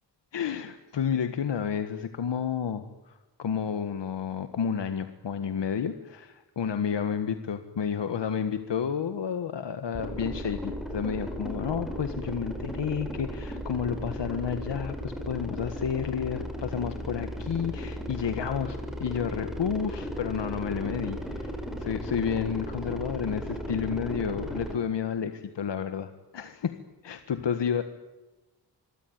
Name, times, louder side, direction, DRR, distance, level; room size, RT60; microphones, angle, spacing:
voice 1, 0.3-21.5 21.8-26.8 27.0-27.8, left 7 dB, 75° left, 9 dB, 1.7 m, -31 dB
sound 1, 9.9-24.8, equal, ahead, 4.8 m, -36 dB
26.5 x 23.0 x 9.6 m, 1.1 s
wide cardioid pair, 160°, 43 cm